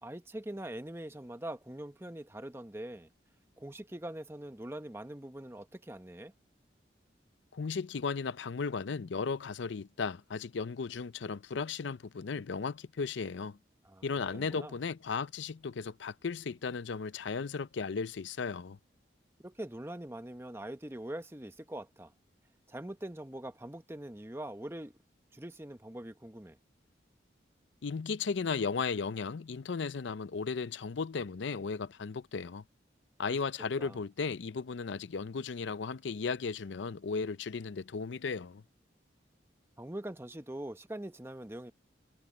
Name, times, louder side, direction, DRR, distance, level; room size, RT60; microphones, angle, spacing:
voice 1, 0.0-3.1 3.6-6.3 13.8-14.0 14.3-14.7 19.4-22.1 22.7-24.9 25.3-26.6 33.8-34.0 39.8-41.7, right 1 dB, 15° right, 0.8 m, -43 dB
voice 2, 7.5-13.6 14.0-18.8 27.8-32.6 33.2-38.6, left 5 dB, 80° left, 0.5 m, -35 dB
head